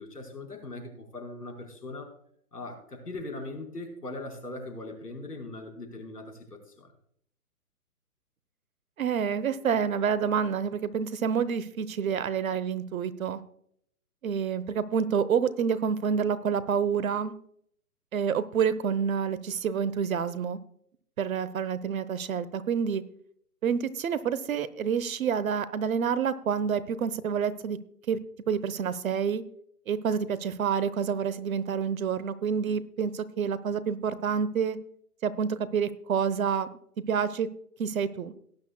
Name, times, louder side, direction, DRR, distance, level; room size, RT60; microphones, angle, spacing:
voice 1, 0.0-2.1 2.5-6.9, left 2 dB, 85° left, 3 dB, 4.6 m, -40 dB
voice 2, 9.0-13.4 14.2-17.3 18.1-20.6 21.2-23.0 23.6-27.8 28.1-28.2 28.5-29.4 29.9-34.8 35.2-36.7 37.1-37.5 37.8-38.3, right 7 dB, 60° right, 16 dB, 1.0 m, -28 dB
18.0 x 10.5 x 2.3 m, 0.66 s
figure-of-eight pair, 135°, 47 cm